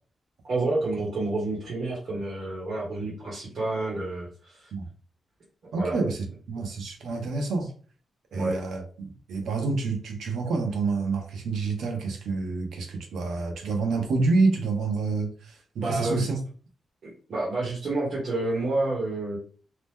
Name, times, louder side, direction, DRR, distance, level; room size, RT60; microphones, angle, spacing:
voice 1, 0.4-4.7 5.8-6.0 8.3-8.6 15.8-16.4 17.0-19.4, right 2 dB, 50° right, -5 dB, 1.0 m, -29 dB
voice 2, 5.7-7.7 8.3-16.4, right 3 dB, 90° right, 3 dB, 0.7 m, -28 dB
2.9 x 2.1 x 3.4 m, 0.41 s
wide cardioid pair, 165°, 0 cm